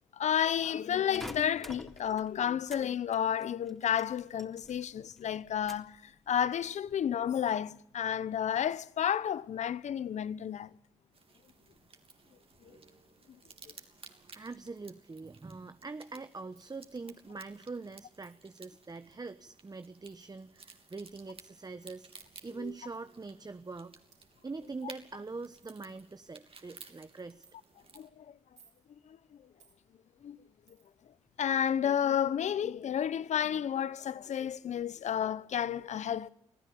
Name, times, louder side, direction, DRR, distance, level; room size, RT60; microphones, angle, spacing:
voice 1, 0.1-10.7 22.6-22.7 27.9-28.3 29.1-29.2 30.2-30.4 31.4-36.3, left 9 dB, 70° left, 0.8 m, -31 dB
sound 1, 1.1-2.9 3.1-4.9 5.2-6.0 6.5-6.9, equal, ahead, 3.4 m, -48 dB
sound 2, 11.1-28.1, right 4 dB, 50° right, 3.3 m, -56 dB
voice 2, 14.3-24.0 24.4-27.4, right 3 dB, 30° right, 1.2 m, -43 dB
Coin (dropping), 15.3-15.5 16.6-16.9 18.2-18.4 20.0-20.3 21.8-22.0 23.0-23.1 23.7-23.8 24.1-24.3 24.9-25.0 25.3-25.4 25.6-25.8 26.2-26.5 27.4-27.6 28.4-28.8 29.6-29.8 30.7-31.0 32.7-32.8 33.4-33.5, right 6 dB, 70° right, 6.9 m, -65 dB
25.5 x 15.5 x 8.5 m
supercardioid pair, 45°, 13 cm